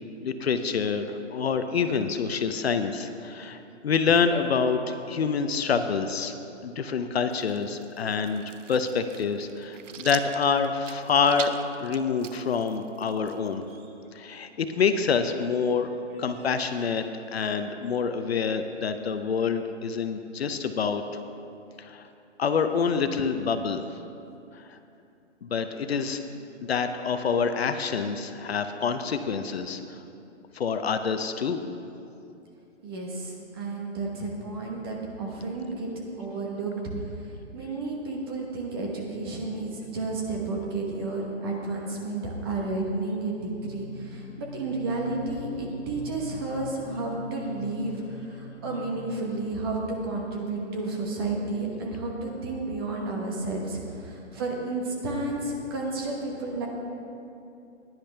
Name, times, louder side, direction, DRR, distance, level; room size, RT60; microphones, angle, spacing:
voice 1, 0.2-6.3 6.6-8.4 8.7-11.5 11.8-13.6 14.1-15.9 16.2-17.0 17.3-21.0 21.8-22.1 22.4-24.0 24.5-24.8 25.4-26.2 26.6-30.0 30.5-31.6, left 5 dB, 55° left, 8 dB, 0.7 m, -27 dB
sound 1, 7.3-13.8, right 8 dB, 85° right, 0.7 m, -43 dB
voice 2, 32.8-36.7 37.5-56.7, right 2 dB, 20° right, -1 dB, 1.0 m, -32 dB
sound 2, 43.4-49.4, left 3 dB, 75° left, 1.0 m, -43 dB
16.0 x 10.5 x 3.4 m, 2.7 s
hypercardioid pair, 170°, 36 cm